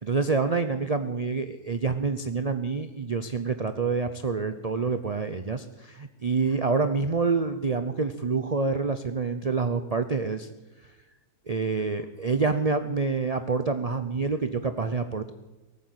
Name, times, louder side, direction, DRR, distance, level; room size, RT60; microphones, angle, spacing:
voice 1, 0.0-10.5 11.5-15.3, right 4 dB, 85° right, 9 dB, 0.3 m, -27 dB
18.5 x 9.1 x 8.1 m, 1.1 s
omnidirectional pair, 1.7 m